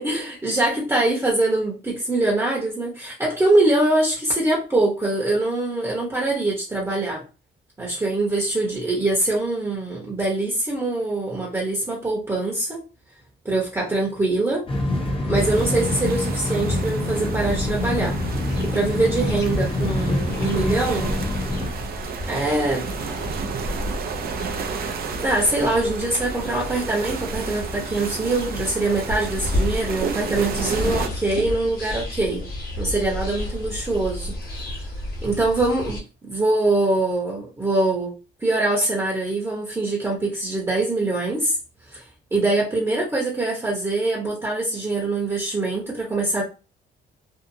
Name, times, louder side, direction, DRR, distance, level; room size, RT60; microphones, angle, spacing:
voice 1, 0.0-7.2 7.8-12.8 13.4-14.6 15.2-18.2 18.6-21.2 22.3-22.9 25.2-32.5 32.8-34.9 35.2-38.1 38.4-41.6 41.9-42.0 42.3-46.4, right 2 dB, 15° right, 0.9 m, -23 dB
sound 1, 14.7-21.7, left 1 dB, 25° left, 0.6 m, -26 dB
sound 2, 15.3-31.1, right 6 dB, 50° right, 0.4 m, -33 dB
sound 3, 17.4-36.0, left 1 dB, 50° left, 1.1 m, -32 dB
2.7 x 2.4 x 2.6 m
cardioid pair, 90°, 20 cm